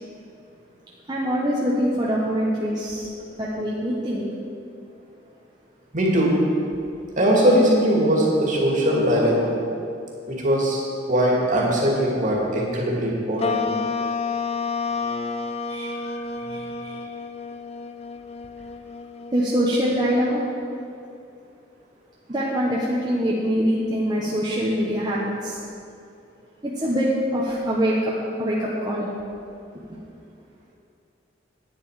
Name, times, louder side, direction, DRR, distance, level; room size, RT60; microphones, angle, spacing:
voice 1, 1.1-3.1 3.4-4.2 15.7-15.9 16.4-17.0 19.3-20.4 22.3-25.6 26.6-28.1 28.4-29.1 29.9-30.0, equal, 25° right, -6 dB, 1.2 m, -24 dB
voice 2, 5.9-6.3 7.2-9.5 10.3-13.6, equal, 45° right, -3 dB, 2.4 m, -20 dB
sound 1, 13.4-20.1, left 4 dB, 35° left, 0.4 m, -30 dB
10.5 x 9.5 x 5.0 m, 2.6 s
head